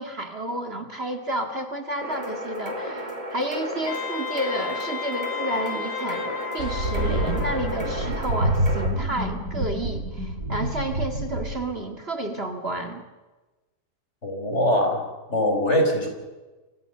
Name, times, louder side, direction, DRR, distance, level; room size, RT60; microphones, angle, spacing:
voice 1, 0.0-13.0, right 1 dB, 40° right, 5 dB, 2.3 m, -31 dB
sound 1, 2.0-8.9, equal, 20° right, 4.6 m, -34 dB
Wind instrument woodwind instrument, 3.9-8.1, left 7 dB, 85° left, 2.1 m, -34 dB
sound 2, 6.6-11.6, right 1 dB, 70° right, 4.4 m, -27 dB
voice 2, 14.2-15.0 15.3-16.1, left 1 dB, 45° left, 3 dB, 5.7 m, -22 dB
30.0 x 24.5 x 6.7 m, 1.2 s
omnidirectional pair, 1.7 m